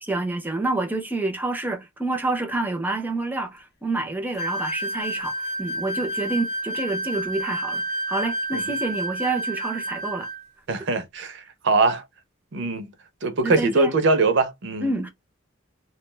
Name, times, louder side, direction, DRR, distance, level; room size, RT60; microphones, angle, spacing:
voice 1, 0.0-10.3 10.7-10.8 13.4-14.0 14.8-15.1, right 2 dB, 10° right, 0.5 m, -28 dB
sound 1, 4.4-10.4, right 1 dB, 50° left, 0.5 m, -30 dB
voice 2, 10.7-12.0 12.5-12.9 13.2-14.9, right 3 dB, 55° right, 0.5 m, -22 dB
2.3 x 2.1 x 3.2 m
head